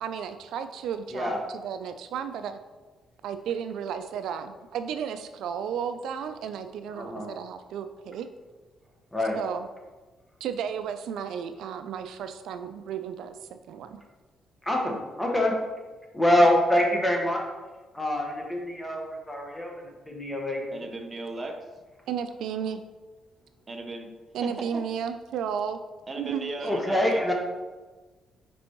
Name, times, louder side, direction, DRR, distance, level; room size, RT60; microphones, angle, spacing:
voice 1, 0.0-2.6 3.2-8.3 9.3-9.7 10.4-13.4 13.7-14.0 22.1-22.8 24.3-25.8 26.2-26.7, right 8 dB, 80° right, 9 dB, 0.3 m, -33 dB
voice 2, 14.6-15.5 16.1-17.4 17.9-20.6 26.6-27.3, left 1 dB, 10° left, 0 dB, 1.3 m, -25 dB
voice 3, 20.7-21.6 23.7-24.1 24.4-24.8 26.1-27.2, right 2 dB, 35° right, 4 dB, 0.7 m, -36 dB
6.1 x 5.2 x 3.0 m, 1.2 s
cardioid pair, 90°, 0 cm